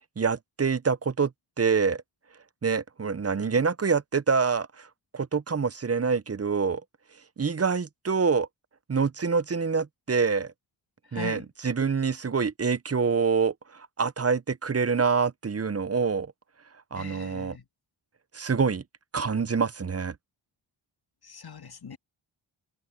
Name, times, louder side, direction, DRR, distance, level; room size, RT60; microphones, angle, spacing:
voice 1, 0.2-1.3 1.6-2.0 2.6-4.9 5.1-6.8 7.4-8.5 8.9-10.5 11.1-16.3 16.9-17.6 18.3-18.8 19.1-20.2, right 5 dB, 30° right, 0.8 m, -26 dB
voice 2, 11.1-11.4 17.0-17.6 21.2-22.0, left 6 dB, 50° left, 2.2 m, -40 dB
cardioid pair, 45°, 49 cm